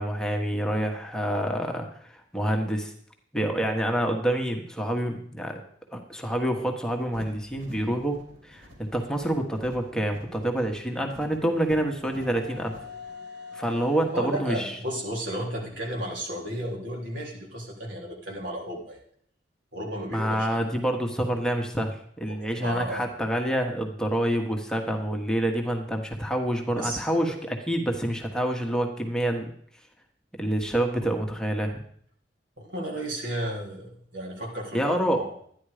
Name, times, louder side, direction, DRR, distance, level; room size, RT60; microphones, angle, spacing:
voice 1, 0.0-2.9 3.3-5.6 5.9-12.7 13.5-14.7 20.1-29.5 30.4-31.8 34.7-35.3, right 1 dB, 5° left, 2 dB, 1.3 m, -27 dB
sound 1, 7.0-13.1, equal, 50° right, 2.9 m, -49 dB
sound 2, 11.6-16.7, left 5 dB, 65° right, 1.3 m, -46 dB
voice 2, 14.1-19.0 19.7-20.5 22.3-23.1 26.8-27.0 32.6-35.3, right 1 dB, 80° right, -1 dB, 3.5 m, -33 dB
12.5 x 10.0 x 5.0 m, 0.62 s
head